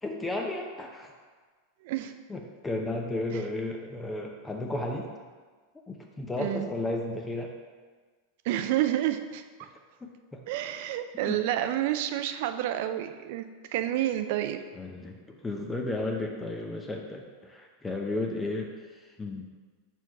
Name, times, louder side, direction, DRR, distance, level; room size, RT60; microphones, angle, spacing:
voice 1, 0.0-1.1 2.3-5.1 5.9-7.5 9.6-9.7 10.0-10.4 11.1-11.4 14.7-19.5, left 2 dB, 15° left, 1 dB, 0.7 m, -34 dB
voice 2, 1.8-2.1 3.3-3.4 6.4-6.7 8.4-9.4 10.5-14.6, right 12 dB, 60° right, 8 dB, 0.4 m, -29 dB
4.6 x 4.5 x 5.3 m, 1.4 s
figure-of-eight pair, 90°, 0 cm